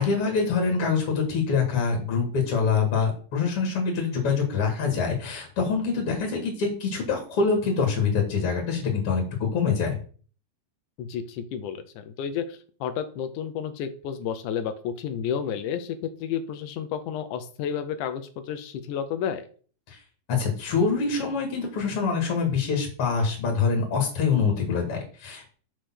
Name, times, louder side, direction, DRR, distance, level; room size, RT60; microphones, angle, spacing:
voice 1, 0.0-10.0 19.9-20.0 20.3-25.5, left 5 dB, 45° left, 2 dB, 2.5 m, -25 dB
voice 2, 11.0-19.5, left 8 dB, 70° left, 9 dB, 2.2 m, -31 dB
6.6 x 4.9 x 6.1 m, 0.41 s
omnidirectional pair, 4.0 m